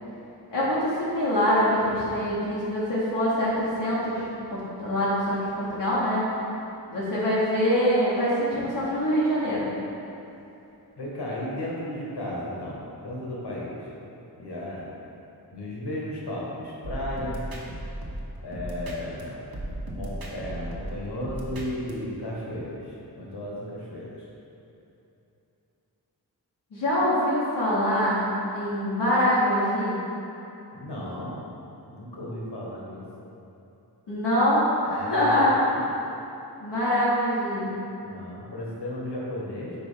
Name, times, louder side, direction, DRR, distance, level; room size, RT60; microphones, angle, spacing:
voice 1, 0.5-6.3 6.9-9.7 26.7-28.2 28.5-29.9 34.1-35.5 36.6-37.7, equal, 90° left, -10 dB, 1.3 m, -24 dB
voice 2, 11.0-13.8 14.4-14.9 15.5-17.4 18.4-24.3 30.7-31.4 31.9-33.0 34.9-35.9 38.0-39.7, left 1 dB, 70° left, -5 dB, 1.5 m, -34 dB
sound 1, 16.8-19.2 19.5-21.9, right 1 dB, 60° right, 1.1 m, -35 dB
5.2 x 4.4 x 5.0 m, 2.9 s
cardioid pair, 45°, 41 cm